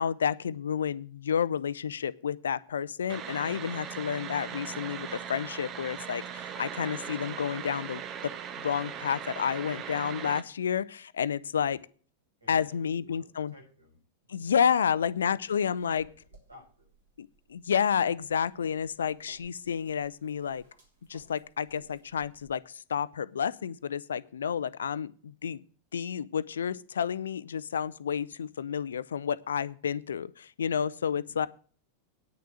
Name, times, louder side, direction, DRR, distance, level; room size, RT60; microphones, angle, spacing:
voice 1, 0.0-11.8 12.5-13.5 14.3-16.0 17.5-20.6 21.1-25.6 25.9-31.5, left 7 dB, 65° left, 18 dB, 0.5 m, -30 dB
sound 1, 3.1-10.4, right 8 dB, 30° right, 0.9 m, -39 dB
voice 2, 12.4-16.9 31.2-31.5, left 1 dB, 80° right, 1 dB, 6.6 m, -57 dB
sound 2, 15.8-22.5, right 2 dB, 65° right, 3.6 m, -61 dB
9.7 x 6.7 x 7.7 m, 0.44 s
figure-of-eight pair, 90°, 0 cm